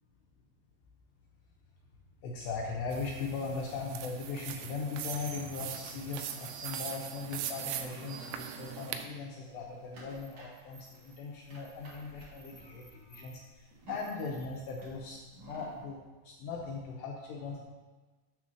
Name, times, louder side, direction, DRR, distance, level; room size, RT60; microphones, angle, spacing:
voice 1, 2.2-17.6, left 4 dB, 80° left, -1 dB, 2.6 m, -39 dB
sound 1, 2.9-9.0, right 10 dB, 90° right, 2.4 m, -41 dB
sound 2, 4.6-9.1 9.4-15.8, right 2 dB, 55° right, 1.8 m, -52 dB
7.4 x 3.7 x 6.3 m, 1.3 s
omnidirectional pair, 5.4 m